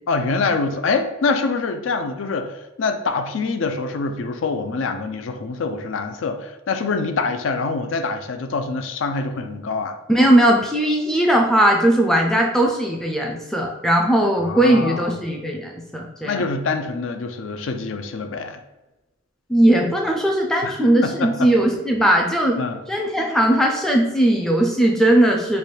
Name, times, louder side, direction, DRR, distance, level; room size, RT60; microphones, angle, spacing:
voice 1, 0.1-10.0 14.4-15.1 16.2-18.6 20.6-21.5 22.6-22.8, left 4 dB, 75° left, 7 dB, 0.4 m, -25 dB
voice 2, 10.1-16.5 19.5-22.6 22.9-25.6, right 1 dB, 5° left, 0 dB, 0.3 m, -18 dB
3.2 x 2.3 x 4.3 m, 1.1 s
head